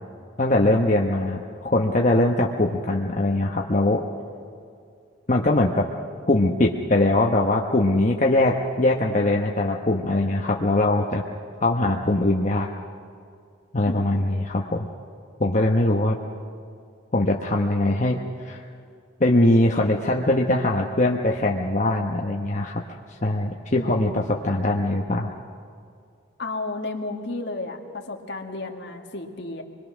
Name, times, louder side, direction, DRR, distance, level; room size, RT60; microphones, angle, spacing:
voice 1, 0.4-4.0 5.3-5.9 6.3-11.2 11.6-12.7 13.7-14.9 15.4-16.2 17.1-18.2 18.4-18.6 19.2-22.8 23.2-25.3, left 1 dB, 40° left, 0 dB, 1.0 m, -21 dB
voice 2, 13.9-14.3 23.8-24.2 26.4-29.6, left 2 dB, 55° left, 3 dB, 1.9 m, -33 dB
26.0 x 21.5 x 6.2 m, 2.3 s
head